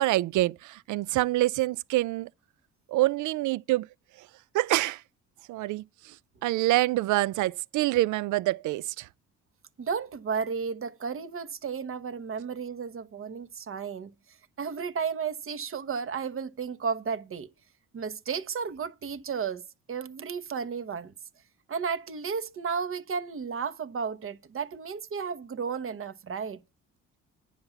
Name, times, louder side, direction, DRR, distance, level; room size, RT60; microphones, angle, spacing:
voice 1, 0.0-2.3 2.9-3.9 4.2-4.3 4.5-5.0 5.5-6.1 6.4-9.1, right 17 dB, 75° right, 0.5 m, -26 dB
voice 2, 9.8-14.1 14.6-17.5 17.9-21.1 21.7-26.6, right 6 dB, 45° right, 1.1 m, -33 dB
9.6 x 5.9 x 6.8 m
cardioid pair, 90°, 30 cm